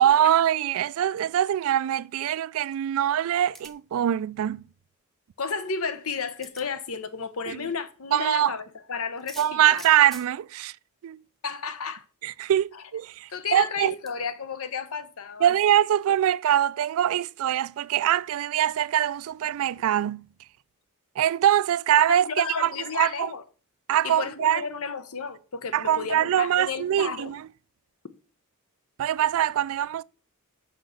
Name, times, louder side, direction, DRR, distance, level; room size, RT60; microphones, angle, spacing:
voice 1, 0.0-4.6 7.5-7.6 8.1-8.5 9.4-10.7 11.0-11.2 12.2-13.9 15.4-20.2 21.2-23.3 23.9-24.6 25.7-27.5 29.0-30.0, right 11 dB, 65° right, 0.3 m, -23 dB
sound 1, 3.5-3.9 5.6-5.7 6.4-6.7 9.2-10.3 11.4-11.5 11.8-11.9 14.0-14.2, equal, ahead, 0.8 m, -45 dB
voice 2, 5.4-9.8 11.4-12.0 12.7-12.8 13.3-15.8 22.1-23.4 24.0-27.3, left 5 dB, 70° left, 0.9 m, -32 dB
6.1 x 5.7 x 6.4 m
head